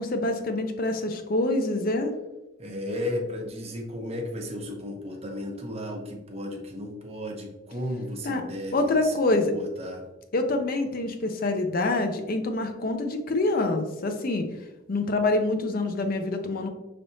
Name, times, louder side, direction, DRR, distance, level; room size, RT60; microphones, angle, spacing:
voice 1, 0.0-2.1 8.2-8.4 8.7-9.5 10.3-14.5 14.9-16.7, left 2 dB, 50° left, 6 dB, 0.5 m, -26 dB
voice 2, 2.6-10.1, left 1 dB, 35° right, 1 dB, 0.9 m, -34 dB
5.7 x 3.4 x 2.7 m, 1.0 s
head